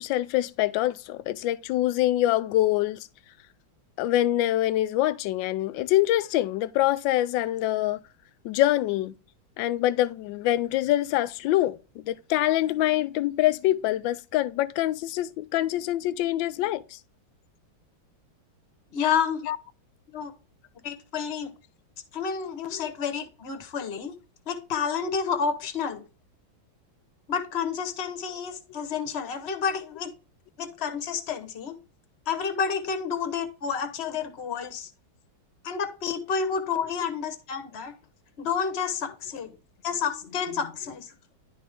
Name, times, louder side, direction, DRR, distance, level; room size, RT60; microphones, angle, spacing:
voice 1, 0.0-3.1 4.0-8.0 8.4-9.1 9.6-17.0 19.4-19.6 22.7-22.9, left 14 dB, 75° left, 1.2 m, -25 dB
voice 2, 18.9-19.4 20.1-20.3 20.8-21.5 22.1-24.2 24.5-26.0 27.3-30.1 30.6-31.8 32.3-34.9 35.6-37.9 38.4-39.5 39.8-41.1, left 6 dB, 40° left, 1.1 m, -30 dB
11.0 x 3.8 x 3.5 m
omnidirectional pair, 2.2 m